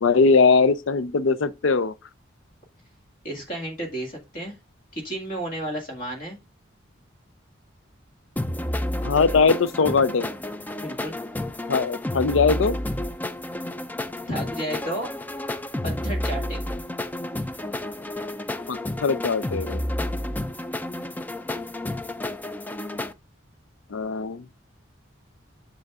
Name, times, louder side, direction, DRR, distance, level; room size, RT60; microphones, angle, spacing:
voice 1, 0.0-1.9 9.0-10.3 11.7-12.8 18.7-19.8 23.9-24.5, left 4 dB, 75° left, 0.5 m, -21 dB
voice 2, 3.2-4.6 4.9-6.4 10.8-11.2 14.3-15.1 15.8-16.6, right 1 dB, 40° left, 1.9 m, -32 dB
sound 1, 8.4-23.1, left 1 dB, 10° left, 0.3 m, -30 dB
7.9 x 6.3 x 2.4 m
head